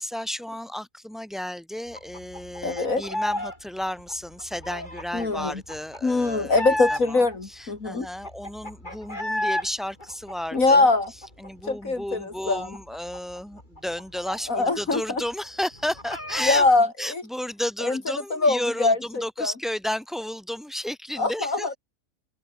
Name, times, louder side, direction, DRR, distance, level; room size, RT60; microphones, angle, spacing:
voice 1, 0.0-6.6 6.9-10.9 11.4-16.7 17.0-21.8, left 1 dB, ahead, 4.7 m, -33 dB
sound 1, 1.9-3.6 3.8-7.4 7.8-7.9 8.0-9.7 10.0-11.7 12.0-12.2 12.5-14.9 15.2-15.3 15.6-16.8, left 1 dB, 30° left, 8.2 m, -33 dB
voice 2, 2.6-3.0 5.1-5.6 6.0-8.1 10.5-11.1 11.6-12.7 14.5-15.2 16.4-17.2 17.8-18.0 18.3-19.5 21.2-21.8, left 3 dB, 60° left, 3.4 m, -23 dB
open air
omnidirectional pair, 1.6 m